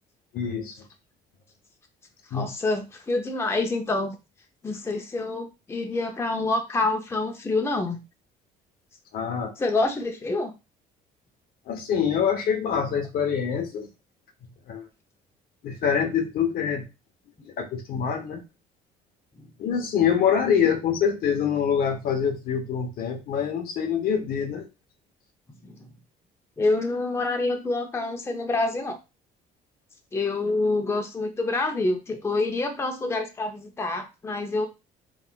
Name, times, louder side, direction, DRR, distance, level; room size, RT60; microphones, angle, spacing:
voice 1, 0.3-0.8 2.3-2.5 9.1-9.5 11.7-13.9 14.7-14.9 15.6-16.9 17.4-18.4 19.6-24.7, left 7 dB, 60° left, 6 dB, 0.7 m, -25 dB
voice 2, 2.3-4.2 4.6-8.0 9.6-10.5 19.4-19.5 25.6-25.9 26.6-29.0 30.1-34.7, left 2 dB, 15° left, 4 dB, 0.5 m, -27 dB
3.7 x 2.4 x 2.2 m, 0.27 s
cardioid pair, 110°, 17 cm